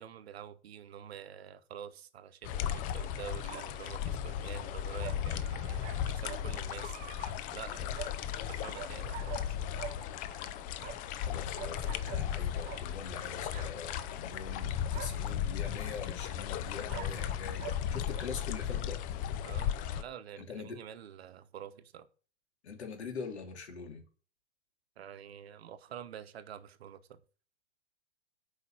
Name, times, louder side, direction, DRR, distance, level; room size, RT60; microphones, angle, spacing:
voice 1, 0.0-7.0 7.5-8.2 8.5-9.8 19.4-22.1 25.0-27.2, right 9 dB, 60° right, 1.1 m, -47 dB
sound 1, 1.4-1.5 3.5-3.7 5.0-6.4 6.8-7.3 7.9-8.1 8.5-9.5 9.8-11.3 11.6-12.3 12.6-12.9 13.5-13.7 14.2-14.3 14.9-15.3 16.9-17.8 18.2-18.3, right 10 dB, 25° right, 0.9 m, -45 dB
sound 2, 2.4-20.0, left 9 dB, 25° left, 0.6 m, -36 dB
voice 2, 11.2-19.0 20.4-20.8 22.6-24.0, left 5 dB, 65° left, 3.1 m, -43 dB
8.2 x 5.3 x 7.5 m
figure-of-eight pair, 115°, 35 cm